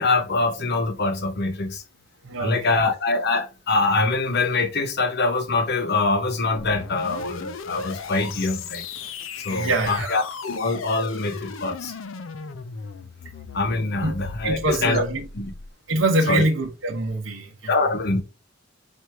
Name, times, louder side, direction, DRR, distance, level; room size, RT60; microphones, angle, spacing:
voice 1, 0.0-1.8 2.4-8.8 9.4-11.9 13.5-15.0 15.4-15.5 16.3-16.5 17.7-18.2, left 3 dB, 55° left, 0.9 m, -24 dB
voice 2, 2.2-2.9 9.5-10.2 14.0-14.1 14.4-15.3 15.9-17.9, right 2 dB, 75° right, 0.9 m, -24 dB
sound 1, 6.5-15.7, left 5 dB, 85° left, 0.5 m, -37 dB
4.5 x 2.6 x 4.6 m
head